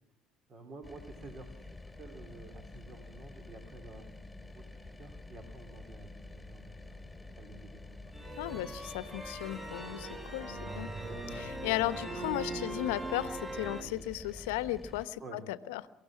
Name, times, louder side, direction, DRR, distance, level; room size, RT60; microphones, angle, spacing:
voice 1, 0.5-4.1 4.5-7.0 7.4-8.1 11.1-11.4 15.2-15.4, right 3 dB, 45° right, 5 dB, 3.4 m, -51 dB
sound 1, 0.8-15.1, left 2 dB, 5° left, 2.7 m, -49 dB
sound 2, 8.1-13.8, right 2 dB, 25° right, 5.4 m, -41 dB
voice 2, 8.4-10.9 11.3-15.8, left 15 dB, 75° left, 15 dB, 0.8 m, -35 dB
23.5 x 15.5 x 7.4 m, 0.92 s
hypercardioid pair, 65°, 0 cm